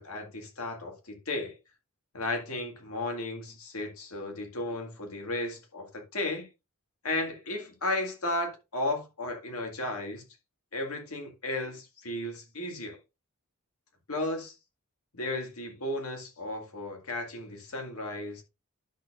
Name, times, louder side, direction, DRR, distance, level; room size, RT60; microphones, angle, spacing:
voice 1, 0.0-1.6 2.1-6.5 7.0-10.2 10.7-13.0 14.1-14.6 15.1-18.4, left 2 dB, 75° left, 2.0 m, -34 dB
12.0 x 6.5 x 2.4 m
head